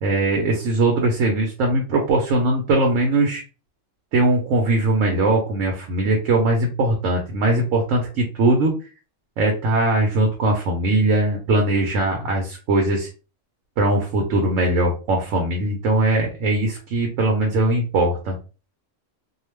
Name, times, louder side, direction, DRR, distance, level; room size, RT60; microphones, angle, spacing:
voice 1, 0.0-3.4 4.1-8.7 9.4-13.1 13.8-18.4, right 2 dB, 80° right, 2 dB, 1.0 m, -20 dB
2.3 x 2.3 x 3.1 m, 0.34 s
omnidirectional pair, 1.3 m